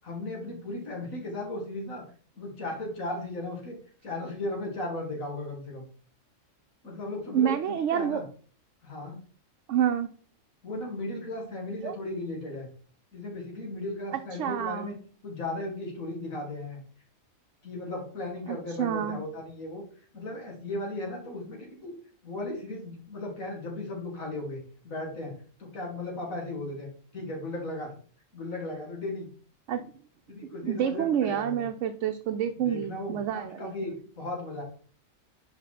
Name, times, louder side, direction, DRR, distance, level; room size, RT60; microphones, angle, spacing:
voice 1, 0.0-2.0 2.4-3.8 4.0-5.8 6.8-8.2 8.8-9.2 10.6-12.7 13.1-14.9 15.2-16.8 17.6-19.8 20.1-21.9 22.2-25.3 25.6-26.9 27.1-28.0 28.3-29.3 30.3-31.7 32.6-34.6, left 2 dB, 85° left, 0 dB, 2.5 m, -36 dB
voice 2, 7.3-8.2 9.7-10.1 11.8-11.9 14.4-15.0 18.5-19.2 29.7-29.9 30.6-33.7, right 9 dB, 70° right, 6 dB, 0.9 m, -28 dB
5.5 x 5.1 x 4.1 m, 0.43 s
omnidirectional pair, 1.4 m